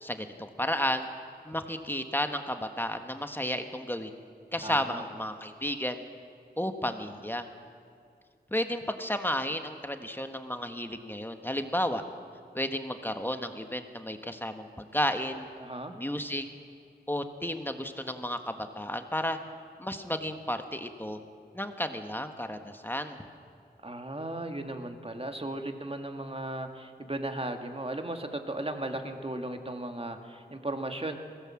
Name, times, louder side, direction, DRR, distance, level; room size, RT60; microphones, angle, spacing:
voice 1, 0.0-1.1 1.4-4.1 4.5-6.0 6.6-7.5 8.5-12.0 12.5-14.7 14.9-15.5 15.9-16.4 17.1-19.4 19.8-21.2 21.5-23.2, left 1 dB, 10° left, 7 dB, 1.4 m, -32 dB
voice 2, 4.6-5.1 15.6-16.0 23.8-31.1, right 1 dB, 30° right, 5 dB, 1.9 m, -36 dB
21.5 x 17.0 x 7.6 m, 2.3 s
wide cardioid pair, 65°, 18 cm